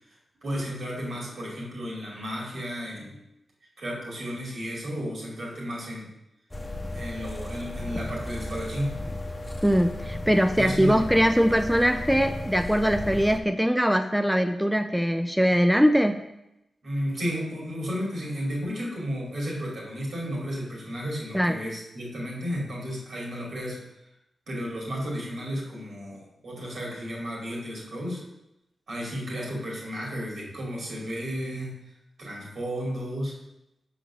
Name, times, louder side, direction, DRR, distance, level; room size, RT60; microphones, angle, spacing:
voice 1, 0.4-3.2 3.8-6.1 6.9-9.0 10.5-11.0 16.8-23.8 24.5-28.2 28.9-31.7 32.2-33.4, equal, 70° right, -4 dB, 2.5 m, -33 dB
sound 1, 6.5-13.4, left 1 dB, 20° left, 1.0 m, -35 dB
voice 2, 9.6-16.2 21.3-21.6, equal, 5° right, 7 dB, 0.4 m, -22 dB
5.9 x 4.0 x 6.0 m, 0.89 s
cardioid pair, 50°, 0 cm